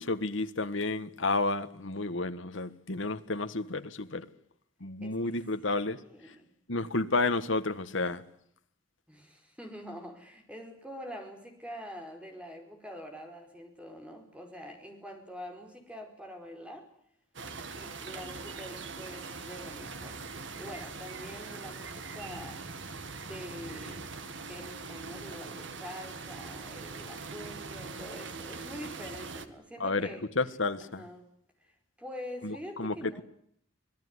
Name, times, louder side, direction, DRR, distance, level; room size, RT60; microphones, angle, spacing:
voice 1, 0.0-4.2 4.8-6.0 6.7-8.2 29.8-30.1 30.4-31.0 32.4-33.2, left 3 dB, 70° left, 1.5 m, -31 dB
voice 2, 5.8-6.5 9.1-16.9 17.6-20.2 20.6-22.6 23.2-24.1 24.5-30.3 30.9-31.3 31.6-33.2, equal, 5° right, 4.9 m, -45 dB
sound 1, 17.3-29.5, right 4 dB, 65° right, 1.9 m, -42 dB
25.5 x 18.5 x 9.8 m
head